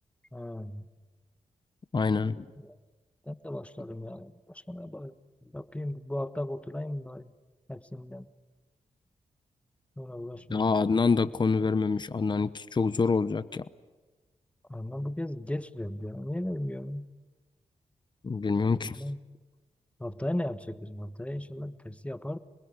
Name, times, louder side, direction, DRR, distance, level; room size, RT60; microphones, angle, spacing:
voice 1, 0.3-0.9 2.6-2.8 3.3-5.1 5.5-7.3 7.7-8.3 10.0-10.7 14.7-17.1 18.7-19.2 20.0-22.4, left 1 dB, 10° left, 12 dB, 1.4 m, -36 dB
voice 2, 1.9-2.4 10.5-13.6 18.2-19.0, left 4 dB, 35° left, 14 dB, 0.9 m, -26 dB
27.0 x 21.0 x 9.8 m, 1.3 s
cardioid pair, 65°, 13 cm